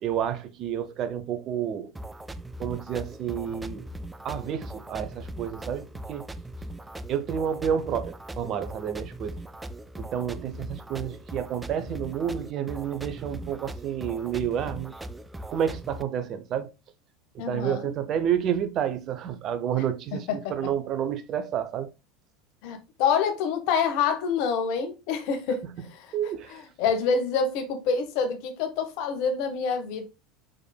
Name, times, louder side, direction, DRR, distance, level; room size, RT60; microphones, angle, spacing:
voice 1, 0.0-1.9 2.6-3.8 4.2-6.3 7.1-9.4 10.0-14.9 15.5-16.7 17.3-21.9 26.1-26.6, right 9 dB, 45° right, 0.8 m, -30 dB
sound 1, 2.0-16.0, right 1 dB, 10° right, 0.4 m, -40 dB
voice 2, 17.4-18.0 20.3-20.5 22.6-26.1 26.5-30.0, left 6 dB, 60° left, 1.3 m, -27 dB
5.0 x 4.5 x 2.3 m
figure-of-eight pair, 75°, 0 cm